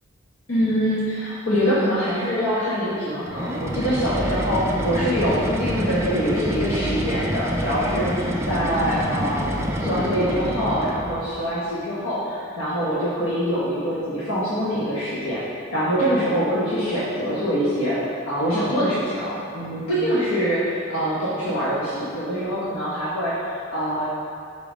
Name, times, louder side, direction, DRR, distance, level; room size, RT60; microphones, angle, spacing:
voice 1, 0.5-18.0 18.2-24.0, equal, 85° left, -8 dB, 1.2 m, -24 dB
sound 1, 3.3-11.3, equal, 15° right, 0.5 m, -27 dB
5.3 x 4.7 x 4.9 m, 2.5 s
head